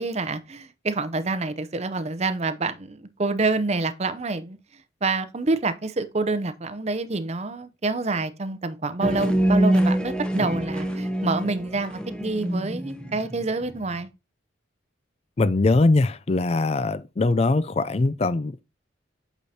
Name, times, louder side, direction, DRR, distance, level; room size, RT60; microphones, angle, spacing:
voice 1, 0.0-4.6 5.0-14.1, right 3 dB, 35° right, 0.6 m, -27 dB
sound 1, 9.0-13.9, right 1 dB, 5° left, 0.9 m, -24 dB
voice 2, 15.4-18.6, left 3 dB, 35° left, 0.4 m, -21 dB
8.4 x 6.2 x 2.8 m
head